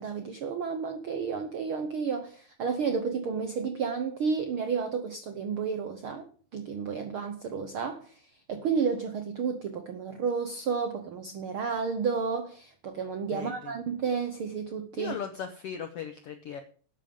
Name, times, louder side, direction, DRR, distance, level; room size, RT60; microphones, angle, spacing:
voice 1, 0.0-15.1, right 5 dB, 75° right, 7 dB, 1.2 m, -31 dB
voice 2, 13.3-13.7 14.9-16.6, left 7 dB, 80° left, 8 dB, 1.3 m, -38 dB
12.5 x 9.1 x 5.2 m, 0.43 s
omnidirectional pair, 3.8 m